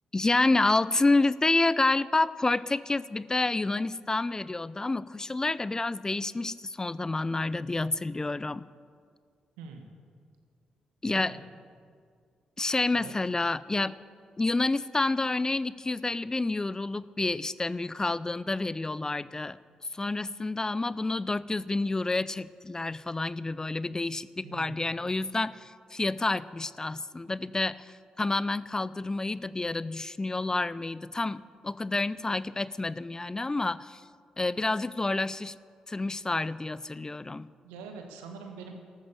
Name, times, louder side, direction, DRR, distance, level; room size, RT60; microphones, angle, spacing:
voice 1, 0.1-8.7 11.0-11.4 12.6-14.0 14.4-19.6 19.9-34.0 34.4-35.6 35.9-37.5, left 2 dB, 25° left, 18 dB, 0.5 m, -29 dB
voice 2, 9.6-9.9 11.1-11.4 12.9-13.1 24.4-24.9 37.6-38.7, right 5 dB, 85° right, 4 dB, 1.7 m, -44 dB
13.5 x 13.0 x 7.5 m, 2.1 s
hypercardioid pair, 45°, 3 cm